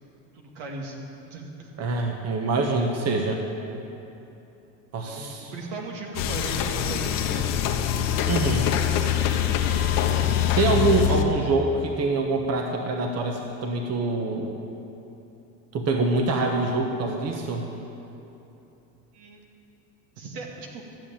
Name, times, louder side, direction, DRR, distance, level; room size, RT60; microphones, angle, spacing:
voice 1, 0.3-1.7 5.1-5.2 5.5-7.7 19.1-19.4 20.2-20.8, right 3 dB, 75° right, 0 dB, 2.3 m, -37 dB
voice 2, 1.8-3.4 4.9-5.5 8.2-8.7 10.6-14.5 15.7-17.7, right 3 dB, 40° right, 2 dB, 1.3 m, -25 dB
sound 1, 6.1-11.2, left 10 dB, 60° left, 1.2 m, -24 dB
13.5 x 7.1 x 8.8 m, 3.0 s
supercardioid pair, 95°, 38 cm